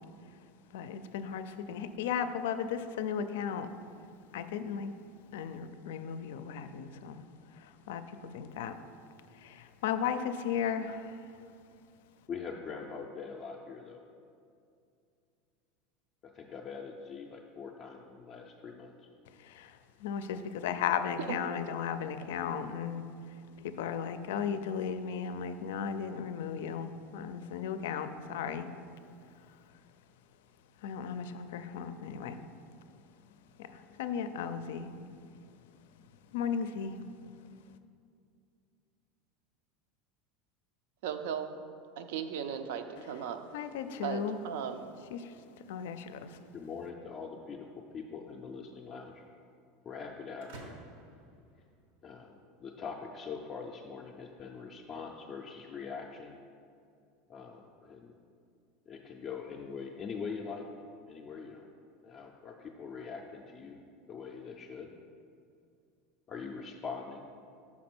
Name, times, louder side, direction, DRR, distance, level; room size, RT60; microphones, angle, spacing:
voice 1, 0.7-3.7 4.3-4.9 5.3-7.2 7.6-8.7 9.4-11.2 19.4-23.0 23.6-28.7 30.8-32.4 33.6-34.9 36.3-37.0 43.5-44.4 45.1-45.3 45.7-46.4, left 7 dB, 90° left, 10 dB, 0.4 m, -35 dB
voice 2, 12.3-14.0 16.3-19.1 46.5-49.2 49.8-50.8 52.0-56.3 57.3-58.2 58.9-60.7 61.1-61.7 62.0-63.8 64.1-64.9 66.3-67.2, left 5 dB, 25° left, 0 dB, 0.4 m, -43 dB
voice 3, 41.0-41.5 42.0-43.4 44.0-44.8, right 8 dB, 70° right, 8 dB, 0.5 m, -36 dB
sound 1, 50.4-52.3, right 3 dB, 90° right, 1.1 m, -52 dB
5.9 x 4.3 x 6.0 m, 2.4 s
supercardioid pair, 170°, 0 cm